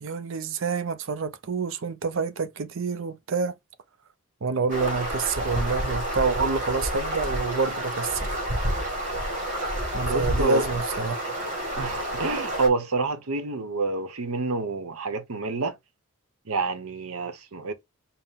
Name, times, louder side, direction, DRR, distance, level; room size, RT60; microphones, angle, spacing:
voice 1, 0.0-3.5 4.4-8.3 9.9-11.2, right 4 dB, 60° right, 0.5 m, -28 dB
sound 1, 4.7-12.7, equal, 35° right, 1.9 m, -29 dB
voice 2, 10.0-10.7 11.8-15.8 16.5-17.7, right 3 dB, 80° right, 0.8 m, -28 dB
5.7 x 2.0 x 3.7 m
head